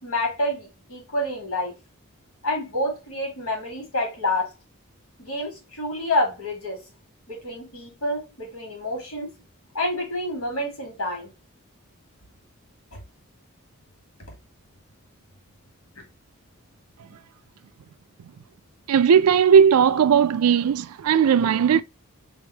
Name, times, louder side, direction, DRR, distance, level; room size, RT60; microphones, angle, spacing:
voice 1, 0.0-1.7 2.4-4.5 5.2-6.8 7.3-9.3 9.7-11.3 12.9-13.0 15.9-16.0, left 1 dB, 90° left, 2.6 m, -28 dB
voice 2, 18.9-21.8, right 7 dB, 90° right, 0.4 m, -17 dB
3.6 x 3.5 x 3.2 m
head